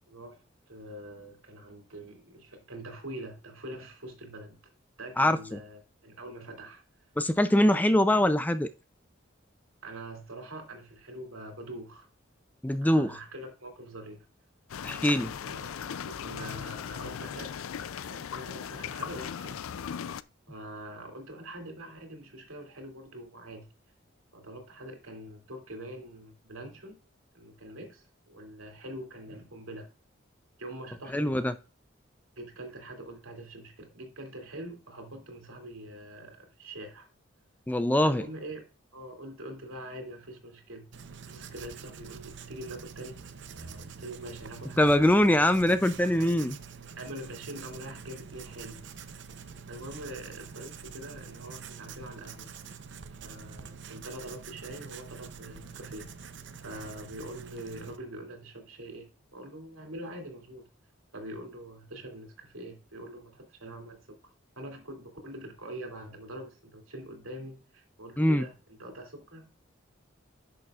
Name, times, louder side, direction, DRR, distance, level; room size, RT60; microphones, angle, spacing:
voice 1, 0.1-4.6 5.0-6.8 7.5-7.6 9.8-12.1 12.8-14.2 14.8-17.7 18.1-19.6 20.5-23.7 24.3-27.0 27.3-29.9 30.6-31.5 32.4-37.1 38.0-38.6 38.9-40.9 41.2-43.2 43.5-44.9 46.2-46.4 47.0-48.8 49.7-52.5 53.2-56.1 56.6-60.7 61.1-64.1 64.6-68.5 68.8-69.5, right 1 dB, 85° right, 2.6 m, -44 dB
voice 2, 5.2-5.6 7.2-8.7 12.6-13.2 14.8-15.3 31.1-31.6 37.7-38.3 44.8-46.6 68.2-68.4, left 1 dB, 10° left, 0.4 m, -23 dB
sound 1, 14.7-20.2, left 8 dB, 90° left, 0.4 m, -38 dB
Writing, 40.9-58.0, right 6 dB, 60° right, 0.7 m, -46 dB
10.5 x 6.7 x 2.4 m
head